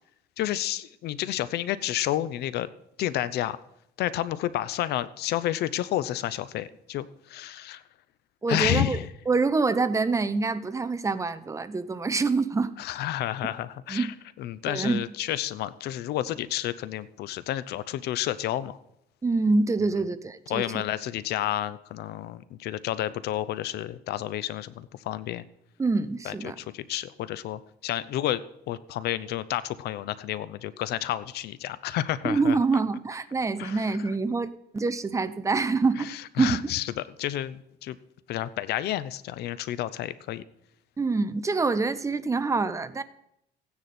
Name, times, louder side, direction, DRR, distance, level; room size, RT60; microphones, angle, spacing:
voice 1, 0.4-2.7 3.0-3.6 4.0-7.8 8.5-9.1 12.8-18.8 20.5-25.4 26.2-32.6 33.6-34.0 36.0-38.0 38.3-40.4, left 13 dB, 75° left, 16 dB, 0.7 m, -30 dB
voice 2, 8.4-9.0 9.3-12.7 13.9-14.1 14.7-15.0 19.2-20.8 25.8-26.6 32.2-36.1 36.4-36.6 41.0-43.0, right 4 dB, 20° right, 13 dB, 0.7 m, -26 dB
15.5 x 9.5 x 4.3 m, 0.79 s
cardioid pair, 110°, 17 cm